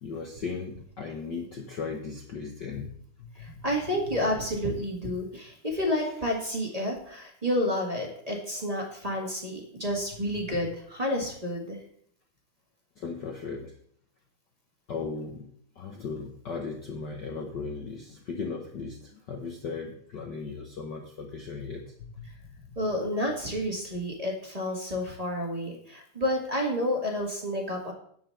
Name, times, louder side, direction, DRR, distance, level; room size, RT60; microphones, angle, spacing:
voice 1, 0.0-2.9 3.2-3.6 6.0-6.1 13.0-13.7 14.9-15.5 15.8-19.0 19.3-22.2, left 4 dB, 80° left, 1 dB, 0.9 m, -37 dB
voice 2, 3.4-11.8 22.7-27.9, left 1 dB, 15° right, 0 dB, 1.3 m, -30 dB
10.0 x 5.6 x 6.6 m, 0.63 s
omnidirectional pair, 3.6 m